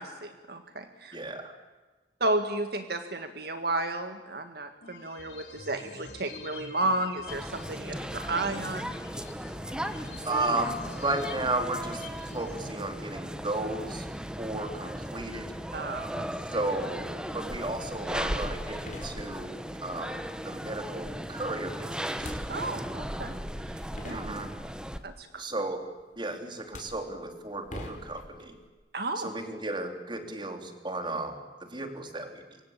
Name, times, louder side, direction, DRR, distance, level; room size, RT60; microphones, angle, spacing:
voice 1, 0.0-1.2 2.2-8.9 9.4-9.5 15.7-16.3 22.5-23.4 23.6-24.2 25.0-25.4 28.9-29.3, right 2 dB, 60° right, 7 dB, 1.9 m, -32 dB
voice 2, 1.1-1.5 10.2-12.1 12.3-14.0 14.4-15.5 16.5-19.5 19.8-22.4 24.1-24.5 25.4-25.8 26.2-28.6 29.2-32.6, right 2 dB, 25° right, 6 dB, 3.4 m, -34 dB
sound 1, 4.8-12.8, left 3 dB, 80° left, 5.4 m, -46 dB
sound 2, 7.3-25.0, equal, 5° right, 1.3 m, -37 dB
sound 3, 18.8-19.8 22.1-23.0 23.7-23.8 24.0-24.9 26.0-26.2 26.6-28.7, left 1 dB, 45° left, 4.8 m, -44 dB
26.5 x 24.0 x 8.8 m, 1.2 s
head